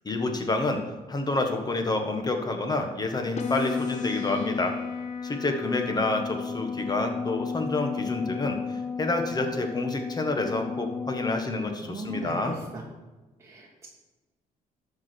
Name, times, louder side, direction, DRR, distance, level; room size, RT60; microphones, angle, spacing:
voice 1, 0.0-0.8 1.1-4.8 5.2-8.6 9.0-12.6, left 2 dB, 25° left, 5 dB, 1.4 m, -28 dB
sound 1, 3.4-11.4, left 5 dB, 50° left, 1.1 m, -33 dB
voice 2, 11.8-12.8 13.4-13.9, right 2 dB, 20° right, -3 dB, 1.6 m, -37 dB
13.0 x 4.9 x 4.5 m, 1.2 s
cardioid pair, 105°, 15 cm